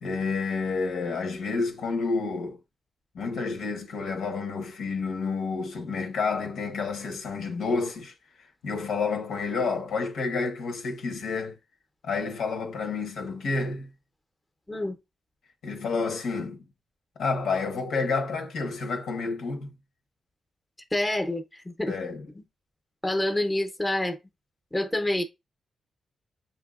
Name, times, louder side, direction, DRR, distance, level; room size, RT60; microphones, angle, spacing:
voice 1, 0.0-2.6 3.1-8.1 8.6-11.6 12.0-13.9 15.6-16.6 17.2-19.7 21.9-22.3, left 4 dB, 85° left, 1.1 m, -29 dB
voice 2, 20.9-22.0 22.4-22.5 23.0-24.2 24.7-25.2, left 1 dB, 10° left, 0.7 m, -27 dB
7.0 x 2.7 x 2.4 m
cardioid pair, 100°, 0 cm